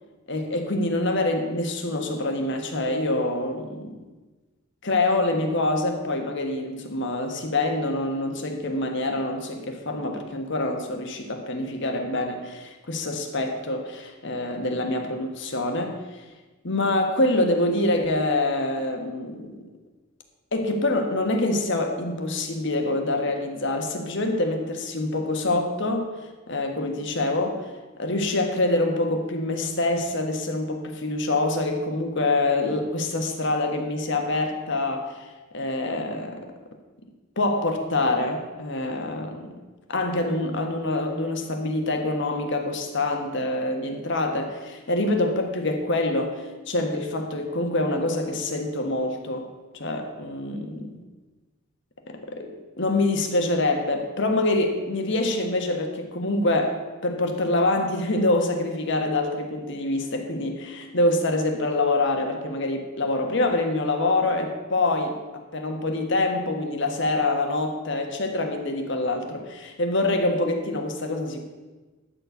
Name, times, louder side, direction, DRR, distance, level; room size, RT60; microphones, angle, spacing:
voice 1, 0.3-4.0 4.8-16.2 16.6-19.6 20.5-26.1 26.5-27.7 28.0-35.2 35.5-36.5 37.4-39.4 39.9-50.8 52.1-65.2 65.5-71.4, left 2 dB, 60° left, 4 dB, 1.5 m, -25 dB
13.0 x 4.5 x 8.3 m, 1.2 s
head